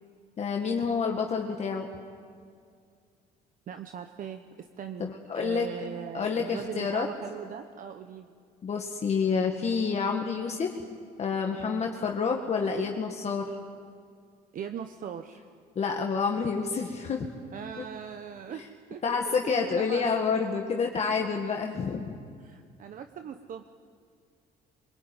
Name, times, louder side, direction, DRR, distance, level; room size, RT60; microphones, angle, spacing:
voice 1, 0.4-1.9 5.0-5.7 6.1-7.1 8.6-10.8 11.2-13.5 15.8-17.3 17.8-17.9 19.0-22.2, left 5 dB, 40° left, 1 dB, 1.8 m, -28 dB
voice 2, 3.7-8.3 11.6-11.8 14.5-15.4 17.5-18.6 18.9-20.1 22.4-23.6, right 8 dB, 55° right, 7 dB, 1.1 m, -40 dB
24.0 x 22.0 x 9.2 m, 2.2 s
cardioid pair, 110°, 17 cm